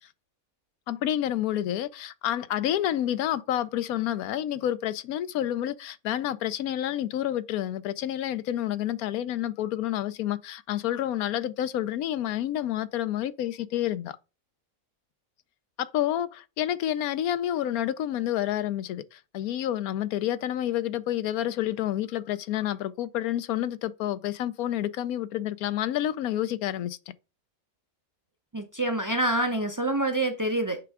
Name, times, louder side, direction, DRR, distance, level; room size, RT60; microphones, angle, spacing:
voice 1, 0.9-14.2 15.8-27.0, left 12 dB, 85° left, 1.1 m, -29 dB
voice 2, 28.5-30.8, right 1 dB, 30° right, 0.3 m, -26 dB
8.0 x 3.5 x 4.8 m
omnidirectional pair, 1.5 m